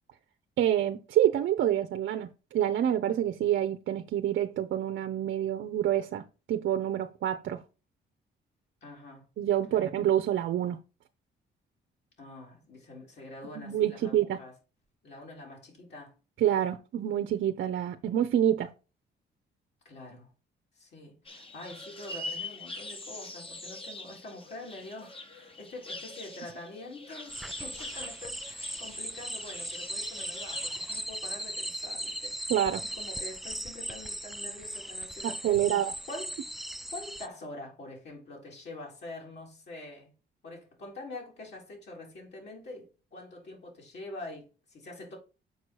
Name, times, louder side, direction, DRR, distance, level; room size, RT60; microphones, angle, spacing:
voice 1, 0.6-6.2 6.5-7.6 9.4-10.8 13.6-14.4 16.4-18.7 32.5-32.8 35.2-35.9, right 11 dB, 70° right, 0.8 m, -27 dB
voice 2, 8.8-9.3 9.7-9.9 12.2-14.5 15.0-16.1 19.8-20.3 20.7-32.5 32.8-36.3 36.9-40.1 40.4-45.2, left 2 dB, 60° left, 4.1 m, -45 dB
sound 1, 21.3-31.0, left 2 dB, 25° left, 1.6 m, -43 dB
sound 2, 27.3-37.3, right 1 dB, ahead, 0.4 m, -38 dB
7.1 x 4.7 x 4.6 m
cardioid pair, 90°, 20 cm